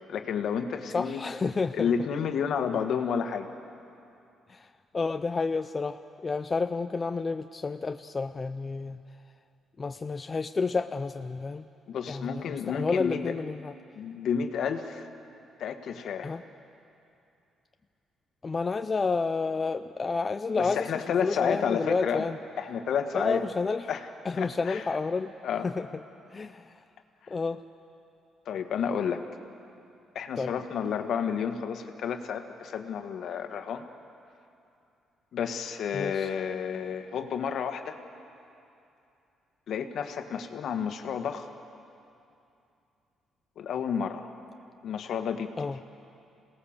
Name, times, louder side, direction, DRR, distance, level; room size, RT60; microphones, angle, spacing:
voice 1, 0.1-1.2 1.7-3.5 11.9-13.2 13.9-15.0 15.6-16.4 20.6-22.2 22.6-23.4 23.9-24.1 24.4-24.9 25.4-25.7 28.5-29.2 30.1-33.8 35.3-38.0 39.7-41.5 43.6-44.3 44.8-45.5, left 7 dB, 60° left, 7 dB, 1.5 m, -31 dB
voice 2, 0.9-1.9 4.5-4.7 4.9-9.0 9.8-11.6 12.1-13.7 16.2-16.4 18.4-20.9 21.2-22.4 23.1-23.9 24.2-25.3 25.6-25.9 26.3-26.7 27.3-27.6 30.4-30.5 35.9-36.3 45.6-45.8, left 4 dB, 25° left, 8 dB, 0.5 m, -30 dB
27.5 x 18.0 x 7.3 m, 2.7 s
cardioid pair, 130°, 0 cm